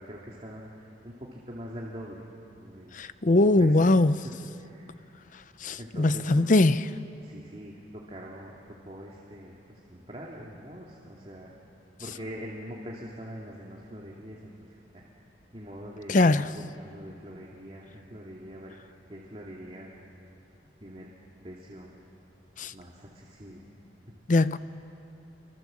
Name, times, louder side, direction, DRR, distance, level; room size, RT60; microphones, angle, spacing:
voice 1, 0.0-2.3 2.6-3.8 4.2-5.1 5.7-6.3 7.2-8.6 8.8-11.5 12.0-15.1 15.5-18.7 19.1-19.9 20.8-21.1 21.4-21.9 22.7-23.6, equal, 30° right, 2.4 m, -43 dB
voice 2, 2.9-4.1 5.6-6.8 16.1-16.5 22.6-22.7 24.3-24.6, left 2 dB, 45° left, 0.6 m, -21 dB
28.5 x 25.0 x 7.6 m
head